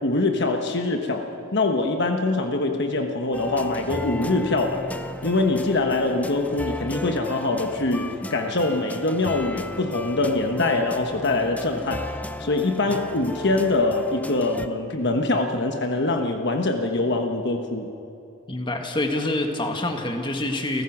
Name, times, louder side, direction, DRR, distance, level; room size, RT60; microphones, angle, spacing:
voice 1, 0.0-4.8 5.2-12.1 12.4-17.9, left 2 dB, 55° left, 4 dB, 1.3 m, -24 dB
sound 1, 3.3-14.7, left 1 dB, 5° left, 0.5 m, -35 dB
voice 2, 18.5-20.8, left 1 dB, 25° left, 3 dB, 1.7 m, -26 dB
29.5 x 14.5 x 6.1 m, 2.7 s
head